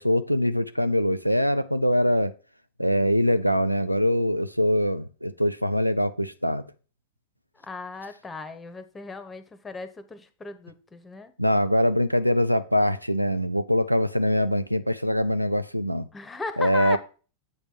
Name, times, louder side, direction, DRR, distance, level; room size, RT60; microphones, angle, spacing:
voice 1, 0.0-2.3 2.8-6.6 11.4-16.1 16.6-17.0, equal, 90° right, 0.4 m, -23 dB
voice 2, 7.6-11.3 16.1-17.0, left 4 dB, 15° left, 0.9 m, -36 dB
7.9 x 3.5 x 6.0 m
figure-of-eight pair, 90°, 0 cm